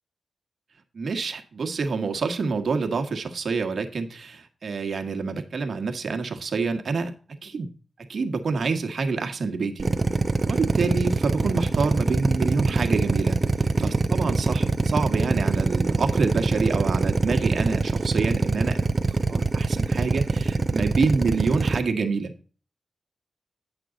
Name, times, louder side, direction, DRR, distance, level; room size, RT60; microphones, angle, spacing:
voice 1, 0.9-7.1 7.4-7.7 8.1-9.9 10.5-13.4 13.8-22.3, right 4 dB, 65° right, 5 dB, 1.6 m, -27 dB
Drill, 9.8-21.8, right 3 dB, 35° right, 0.8 m, -23 dB
10.0 x 6.6 x 3.9 m, 0.38 s
cardioid pair, 75°, 0 cm